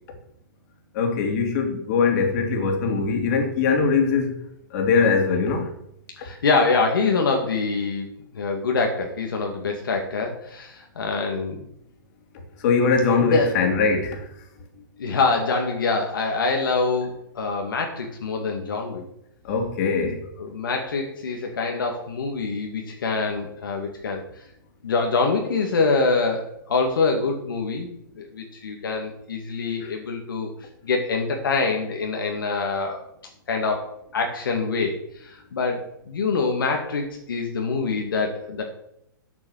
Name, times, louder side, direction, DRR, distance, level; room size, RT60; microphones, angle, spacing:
voice 1, 0.9-4.4 4.7-5.7 12.6-14.3 19.4-20.2 29.8-29.9, left 5 dB, 50° left, 3 dB, 3.0 m, -21 dB
voice 2, 6.2-11.6 13.2-13.6 15.0-19.0 20.4-24.2 24.8-27.9 28.1-30.5 30.8-33.0 33.5-38.6, left 4 dB, 75° left, 2 dB, 2.3 m, -25 dB
8.6 x 8.3 x 6.6 m, 0.75 s
hypercardioid pair, 125°, 11 cm